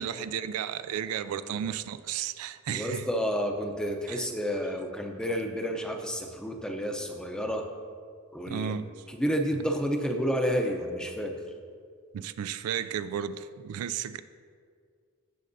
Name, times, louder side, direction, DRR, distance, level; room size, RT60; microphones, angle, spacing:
voice 1, 0.0-3.1 4.1-4.2 8.5-8.9 12.1-14.2, right 8 dB, 75° right, 13 dB, 0.3 m, -33 dB
voice 2, 2.7-7.6 8.3-8.7 9.1-11.3, equal, 5° left, 3 dB, 0.6 m, -30 dB
15.5 x 6.3 x 2.7 m, 2.1 s
head